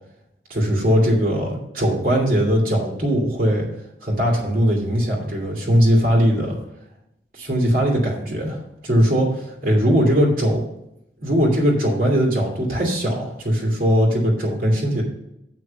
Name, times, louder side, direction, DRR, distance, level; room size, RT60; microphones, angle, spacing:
voice 1, 0.5-3.6 4.0-6.6 7.3-8.6 8.8-10.6 11.2-15.0, equal, 50° right, -2 dB, 2.3 m, -19 dB
7.4 x 5.9 x 6.6 m, 0.84 s
head